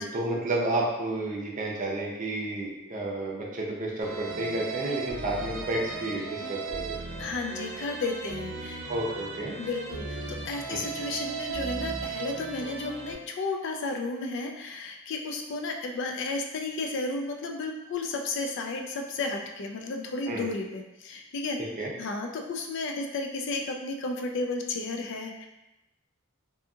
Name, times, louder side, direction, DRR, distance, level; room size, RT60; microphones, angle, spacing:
voice 1, 0.0-7.3 8.9-9.5 10.7-10.8 20.3-20.5 21.8-21.9, right 2 dB, 40° right, -3 dB, 0.5 m, -31 dB
sound 1, 4.0-13.2, right 4 dB, 85° right, 0.5 m, -36 dB
voice 2, 7.2-8.8 9.6-25.5, left 3 dB, 60° left, 3 dB, 0.4 m, -33 dB
2.7 x 2.6 x 2.3 m, 0.96 s
head